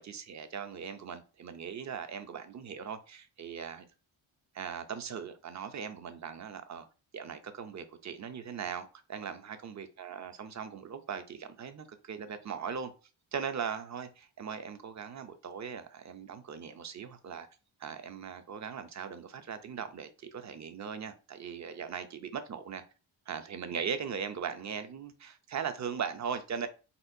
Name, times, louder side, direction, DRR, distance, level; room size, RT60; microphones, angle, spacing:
voice 1, 0.0-3.8 4.5-6.9 7.1-12.9 13.3-17.5 17.8-22.8 23.3-26.7, right 7 dB, 35° right, 0.5 m, -39 dB
4.3 x 4.2 x 2.6 m
wide cardioid pair, 155°, 49 cm